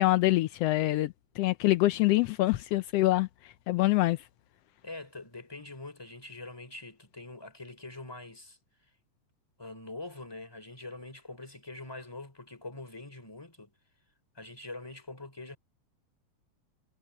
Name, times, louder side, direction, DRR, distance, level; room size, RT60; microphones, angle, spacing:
voice 1, 0.0-4.2, left 17 dB, 90° left, 1.4 m, -25 dB
voice 2, 4.8-8.6 9.6-13.7 14.3-15.6, left 2 dB, 10° left, 3.1 m, -44 dB
omnidirectional pair, 3.5 m